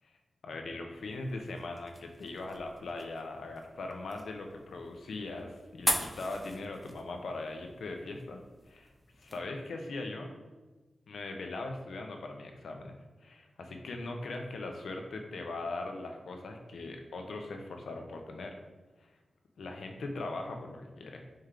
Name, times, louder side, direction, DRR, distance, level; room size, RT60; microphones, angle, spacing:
voice 1, 0.4-8.4 8.7-10.3 11.1-18.6 19.0-19.1 19.6-21.2, left 2 dB, 90° left, 3 dB, 0.6 m, -40 dB
sound 1, 0.9-9.4, equal, ahead, 0.4 m, -41 dB
4.3 x 3.3 x 3.7 m, 1.2 s
wide cardioid pair, 160°, 0 cm